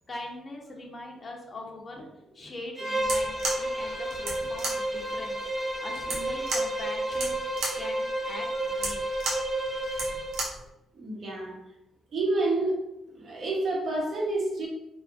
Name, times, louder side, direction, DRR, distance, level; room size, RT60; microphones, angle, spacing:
voice 1, 0.1-2.1 2.3-5.4 5.8-7.4 7.8-9.0, left 2 dB, 30° left, 0 dB, 0.5 m, -42 dB
Bowed string instrument, 2.8-10.4, right 1 dB, ahead, 1.0 m, -31 dB
sound 1, 3.0-10.7, right 2 dB, 90° right, 0.7 m, -35 dB
voice 2, 10.9-11.6 12.1-12.8 13.1-14.7, right 2 dB, 55° right, -2 dB, 0.9 m, -28 dB
2.7 x 2.3 x 2.5 m, 0.89 s
cardioid pair, 105°, 0 cm